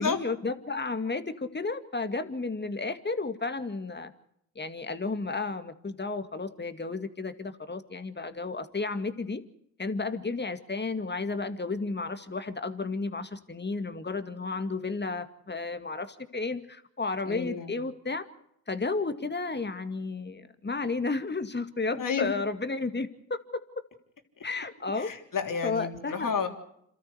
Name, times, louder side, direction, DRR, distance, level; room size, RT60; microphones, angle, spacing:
voice 1, 0.0-4.1 4.6-9.4 9.8-18.2 18.7-23.4 24.4-25.1 25.6-26.3, left 3 dB, 25° left, 9 dB, 2.2 m, -32 dB
voice 2, 17.2-17.8 22.0-22.3 24.4-24.5 25.0-26.5, left 6 dB, 55° left, 4 dB, 3.6 m, -31 dB
28.0 x 13.5 x 8.1 m, 0.74 s
supercardioid pair, 50°, 39 cm